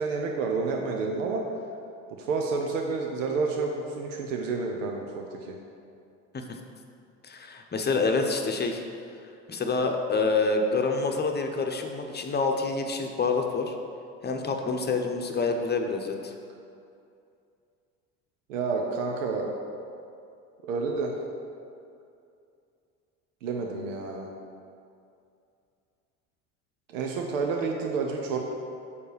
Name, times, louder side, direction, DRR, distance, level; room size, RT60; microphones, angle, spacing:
voice 1, 0.0-1.4 2.1-5.6 18.5-19.5 20.6-21.1 23.4-24.3 26.9-28.4, right 4 dB, 90° right, 1 dB, 0.7 m, -29 dB
voice 2, 7.2-8.8 9.5-13.8 14.2-16.3, left 3 dB, 25° left, 4 dB, 0.8 m, -27 dB
6.9 x 4.5 x 5.0 m, 2.5 s
hypercardioid pair, 75°, 37 cm